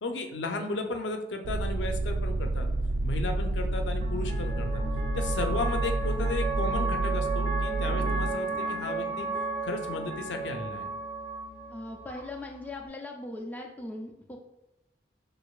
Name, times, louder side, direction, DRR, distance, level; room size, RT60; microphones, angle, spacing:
voice 1, 0.0-2.7 3.0-4.8 5.2-9.3 9.6-10.9, left 2 dB, 90° left, 5 dB, 0.5 m, -34 dB
sound 1, 1.4-8.3, right 2 dB, 75° right, 0.3 m, -29 dB
sound 2, 2.5-12.9, right 3 dB, 55° right, 0.9 m, -35 dB
voice 2, 11.7-14.4, left 2 dB, 10° left, 0 dB, 0.4 m, -39 dB
6.3 x 2.5 x 2.3 m, 0.89 s
head